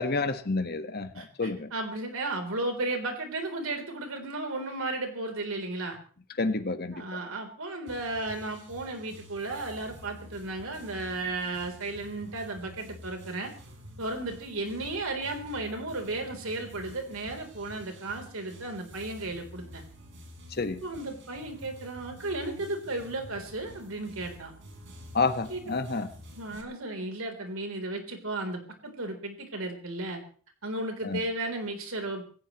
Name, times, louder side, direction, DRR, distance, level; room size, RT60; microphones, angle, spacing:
voice 1, 0.0-1.7 6.4-7.0 20.6-20.8 25.1-26.1 31.0-31.2, left 3 dB, 50° left, 9 dB, 1.4 m, -29 dB
voice 2, 1.2-6.0 6.9-13.5 14.0-19.8 20.8-24.5 25.5-26.1 26.4-30.2 30.6-32.2, right 2 dB, 85° right, 4 dB, 3.7 m, -34 dB
sound 1, 7.9-26.6, equal, 60° right, 4.6 m, -49 dB
26.5 x 15.0 x 3.1 m, 0.43 s
head